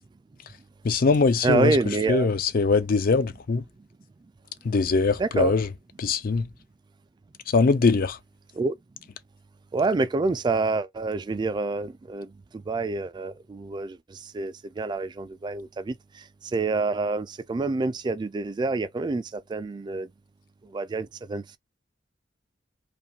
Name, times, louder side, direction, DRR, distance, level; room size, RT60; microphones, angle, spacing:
voice 1, 0.8-1.8 2.1-3.6 4.6-5.7 6.0-6.5 7.5-8.2, left 4 dB, 50° left, 0.4 m, -22 dB
voice 2, 1.4-2.3 5.2-5.5 8.5-8.7 9.7-20.1 20.6-21.6, right 3 dB, 25° right, 0.3 m, -27 dB
2.5 x 2.4 x 2.8 m
head